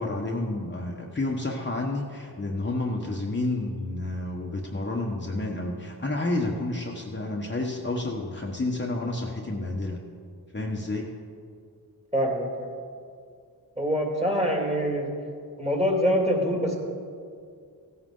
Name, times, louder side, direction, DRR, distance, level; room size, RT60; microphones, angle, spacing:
voice 1, 0.0-10.0 10.5-11.1, left 2 dB, 30° left, -1 dB, 1.2 m, -30 dB
voice 2, 12.1-12.7 13.8-15.1 15.6-16.8, equal, 15° right, 0 dB, 2.4 m, -25 dB
15.5 x 9.4 x 3.8 m, 2.2 s
cardioid pair, 60°, 40 cm